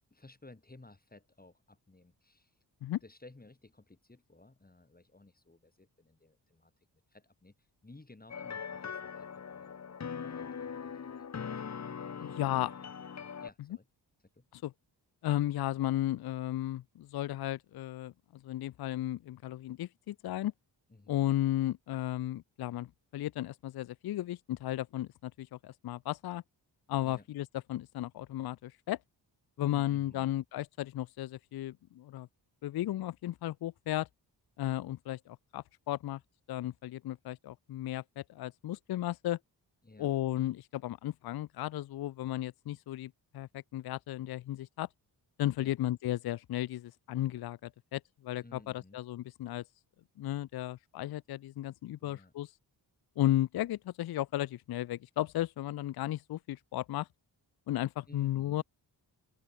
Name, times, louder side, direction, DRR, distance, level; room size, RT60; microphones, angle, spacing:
voice 1, 0.1-2.5 3.0-6.7 7.1-9.7 10.2-11.3 12.2-12.8 13.4-13.9 14.3-14.5 20.9-21.4 27.0-27.3 29.6-30.4 39.8-40.1 45.6-45.7 48.4-49.0 52.0-52.3 58.1-58.6, left 2 dB, 20° left, 5.1 m, -56 dB
sound 1, 8.3-13.5, left 6 dB, 40° left, 1.1 m, -41 dB
voice 2, 12.2-12.7 14.5-14.7 15.2-20.5 21.1-26.4 26.9-29.0 29.6-32.3 32.6-34.1 34.6-36.2 36.5-39.4 40.0-44.9 45.4-49.6 50.2-52.5 53.2-57.1 57.7-58.6, left 14 dB, 65° left, 0.5 m, -34 dB
open air
cardioid pair, 85°, 42 cm